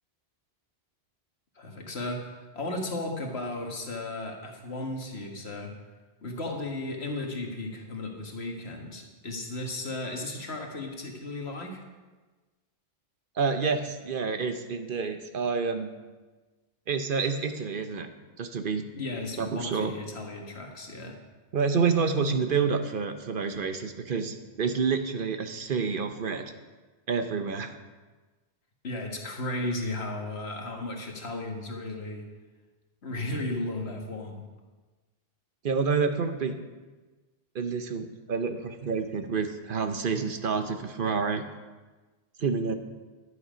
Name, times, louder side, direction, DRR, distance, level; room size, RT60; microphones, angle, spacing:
voice 1, 1.6-5.7 6.2-11.8 19.0-21.2 28.8-32.2 33.0-34.4, left 2 dB, 80° left, 1 dB, 1.8 m, -35 dB
voice 2, 13.4-15.9 16.9-18.1 18.4-18.9 19.4-19.9 21.5-26.5 27.1-27.8 35.6-36.6 37.5-41.4 42.4-42.7, right 5 dB, 60° right, 8 dB, 0.9 m, -28 dB
11.0 x 8.6 x 5.0 m, 1.3 s
omnidirectional pair, 1.1 m